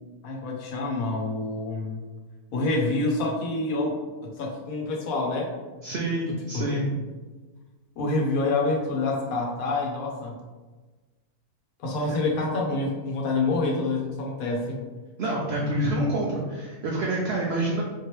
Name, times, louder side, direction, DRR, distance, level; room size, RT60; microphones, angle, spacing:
voice 1, 0.2-2.0 2.5-5.5 6.3-6.8 8.0-10.3 11.8-14.8, left 2 dB, 75° left, -1 dB, 1.3 m, -27 dB
voice 2, 5.8-6.9 12.1-12.2 15.2-17.8, right 1 dB, 55° right, -4 dB, 0.8 m, -27 dB
4.3 x 3.0 x 3.2 m, 1.3 s
omnidirectional pair, 1.5 m